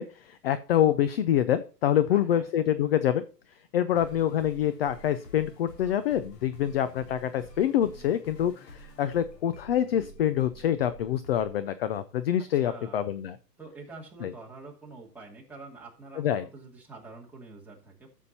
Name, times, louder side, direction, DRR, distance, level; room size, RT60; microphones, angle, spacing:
voice 1, 0.0-3.2 3.7-13.4 14.2-14.3 16.2-16.4, left 10 dB, 40° left, 13 dB, 0.5 m, -26 dB
voice 2, 2.1-2.5 3.9-4.1 12.5-13.1 13.6-18.1, right 3 dB, 5° right, -4 dB, 2.4 m, -46 dB
sound 1, 3.9-11.6, equal, 80° left, 3.0 m, -49 dB
12.5 x 7.2 x 2.8 m, 0.35 s
hypercardioid pair, 140°, 49 cm